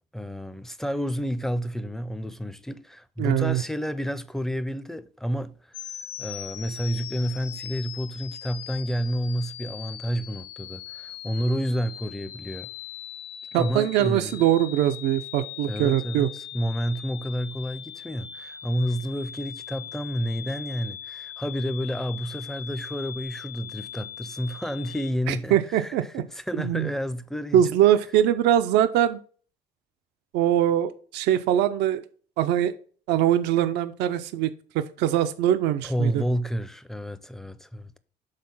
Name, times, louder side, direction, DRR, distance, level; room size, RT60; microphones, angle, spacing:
voice 1, 0.1-5.8 6.2-12.7 13.5-14.5 15.7-27.8 35.8-38.0, equal, ahead, 0.4 m, -30 dB
voice 2, 3.2-3.6 13.5-16.3 25.3-26.2 26.6-26.9 27.5-29.2 30.3-32.0 32.4-32.7 33.1-34.5 34.7-36.2, right 11 dB, 85° right, 0.5 m, -22 dB
sound 1, 5.7-25.1, left 11 dB, 80° left, 0.5 m, -40 dB
6.6 x 3.8 x 5.5 m
cardioid pair, 110°, 17 cm